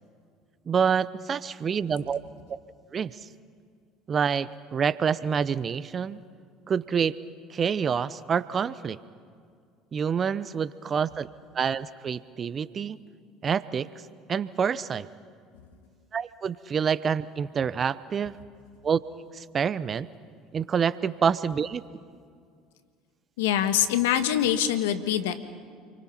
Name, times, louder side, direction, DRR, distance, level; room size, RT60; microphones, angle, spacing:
voice 1, 0.7-2.2 2.5-2.6 2.9-3.2 4.1-6.2 6.7-7.2 7.5-9.0 9.9-11.3 11.5-13.0 13.4-13.9 14.3-15.1 16.1-18.4 18.8-19.0 19.3-20.1 20.5-21.8, right 7 dB, 40° right, 16 dB, 0.8 m, -27 dB
voice 2, 23.4-25.4, left 10 dB, 80° left, 10 dB, 1.5 m, -24 dB
29.5 x 24.5 x 5.8 m, 2.2 s
hypercardioid pair, 70°, 0 cm